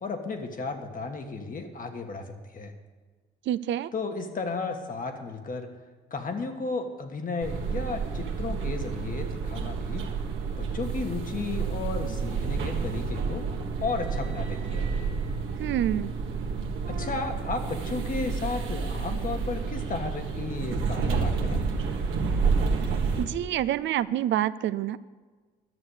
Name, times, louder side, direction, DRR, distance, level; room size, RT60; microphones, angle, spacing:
voice 1, 0.0-2.7 3.9-5.7 6.1-10.1 10.6-13.4 13.8-14.9 16.9-21.6, left 4 dB, 45° left, 5 dB, 1.4 m, -34 dB
voice 2, 3.5-3.9 15.6-16.1 23.2-25.0, right 12 dB, 70° right, 15 dB, 0.4 m, -27 dB
sound 1, 7.4-23.2, right 5 dB, 90° right, 1.5 m, -29 dB
11.0 x 6.8 x 8.0 m, 1.4 s
cardioid pair, 90°, 20 cm